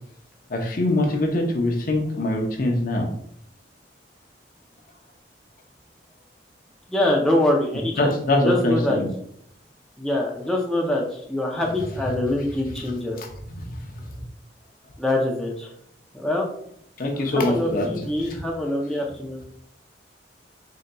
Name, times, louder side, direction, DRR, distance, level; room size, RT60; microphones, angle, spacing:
voice 1, 0.5-3.1 8.0-9.1 13.2-13.3 13.6-14.2 17.0-17.9 18.2-18.4, left 1 dB, 50° left, 3 dB, 0.7 m, -23 dB
voice 2, 6.9-8.1 8.4-9.0 10.0-13.2 15.0-15.7 16.1-16.5 17.4-19.4, left 1 dB, 5° left, -2 dB, 0.4 m, -24 dB
4.0 x 3.8 x 2.2 m, 0.67 s
head